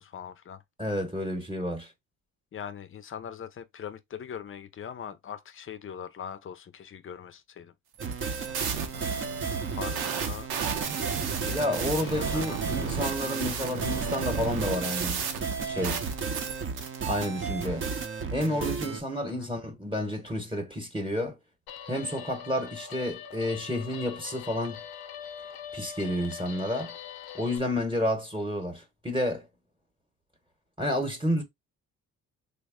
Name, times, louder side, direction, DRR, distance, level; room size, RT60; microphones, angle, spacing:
voice 1, 0.0-0.6 2.5-7.7 9.7-10.5 11.4-13.0 19.2-19.5, left 8 dB, 35° left, 0.6 m, -41 dB
voice 2, 0.8-1.9 11.5-15.2 15.7-16.1 17.1-17.9 18.3-21.4 21.9-24.8 25.7-26.9 27.3-29.5 30.8-31.4, left 1 dB, 15° right, 1.0 m, -30 dB
sound 1, 8.0-19.0, right 5 dB, 35° right, 0.7 m, -33 dB
sound 2, 8.0-17.0, right 6 dB, 90° right, 0.8 m, -34 dB
Guitar, 21.7-27.6, left 8 dB, 85° left, 0.7 m, -43 dB
3.4 x 2.1 x 3.5 m
cardioid pair, 80°, 36 cm